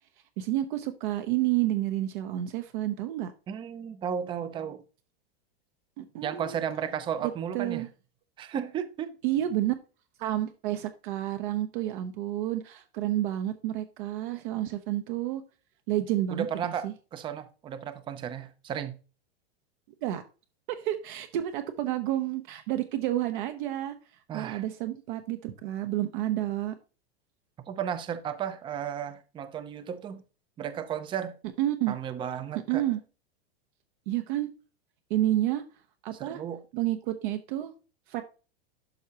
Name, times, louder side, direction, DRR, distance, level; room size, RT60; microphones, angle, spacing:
voice 1, 0.4-3.3 6.0-6.6 7.5-7.9 9.2-9.7 10.2-15.4 15.9-16.9 20.0-20.2 20.7-23.9 24.3-26.7 31.6-32.0 32.7-33.0 34.1-34.5 35.1-35.6 36.0-36.4 36.7-37.7 38.1-38.2, right 13 dB, 55° right, 0.9 m, -30 dB
voice 2, 3.5-4.8 6.2-7.9 8.4-9.2 16.3-19.0 24.3-24.6 27.6-30.2 30.6-31.4 31.9-32.8 36.1-36.6, right 8 dB, 15° right, 0.6 m, -34 dB
11.5 x 4.6 x 2.9 m
supercardioid pair, 150°, 31 cm